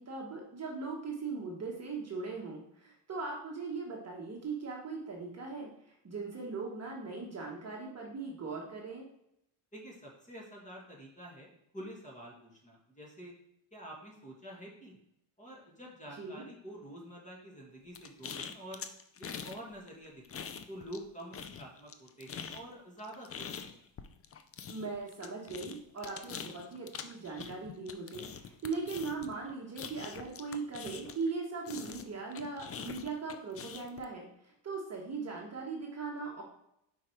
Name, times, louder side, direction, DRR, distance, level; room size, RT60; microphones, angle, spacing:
voice 1, 0.0-9.1 16.2-16.4 24.7-36.4, right 4 dB, 30° right, -2 dB, 1.2 m, -39 dB
voice 2, 9.7-13.3 13.7-15.0 15.4-18.9 19.2-23.8, right 1 dB, 15° left, -2 dB, 1.7 m, -48 dB
sound 1, 17.9-19.6 19.9-21.1 21.3-31.3 31.7-34.0, left 7 dB, 30° left, 0.4 m, -44 dB
4.9 x 4.7 x 4.5 m, 0.78 s
cardioid pair, 105°, 50 cm